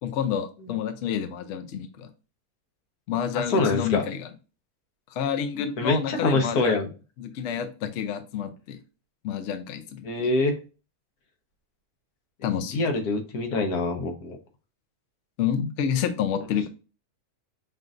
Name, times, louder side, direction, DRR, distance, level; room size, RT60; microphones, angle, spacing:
voice 1, 0.0-2.1 3.1-4.3 5.1-6.8 7.2-8.8 9.2-10.3 12.4-12.8 15.4-16.7, left 8 dB, 65° left, 7 dB, 0.8 m, -29 dB
voice 2, 3.3-4.0 5.8-6.9 10.0-10.6 12.7-14.4, left 3 dB, 85° left, 4 dB, 1.4 m, -25 dB
5.5 x 2.6 x 2.5 m, 0.33 s
omnidirectional pair, 1.6 m